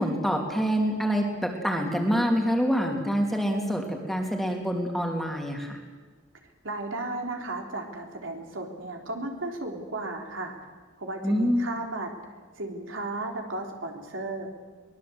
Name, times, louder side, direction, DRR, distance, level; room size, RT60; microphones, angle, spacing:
voice 1, 0.0-5.8 11.2-11.6, equal, ahead, 1 dB, 2.9 m, -26 dB
voice 2, 6.6-10.6 11.0-12.1 12.6-14.5, right 2 dB, 75° right, 2 dB, 3.5 m, -34 dB
23.0 x 20.5 x 8.1 m, 1.4 s
head